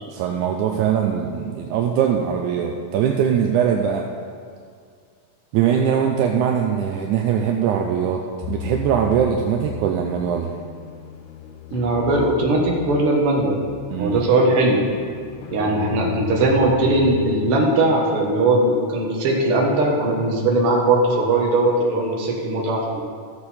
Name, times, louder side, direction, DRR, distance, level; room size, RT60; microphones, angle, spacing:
voice 1, 0.1-4.1 5.5-10.5 13.9-14.3, right 8 dB, 80° right, 2 dB, 1.9 m, -21 dB
sound 1, 8.4-17.5, left 9 dB, 80° left, 2.2 m, -35 dB
voice 2, 11.7-13.6 14.0-14.8 15.5-23.0, right 2 dB, 50° right, -2 dB, 2.0 m, -19 dB
14.5 x 6.7 x 4.3 m, 2.2 s
omnidirectional pair, 3.8 m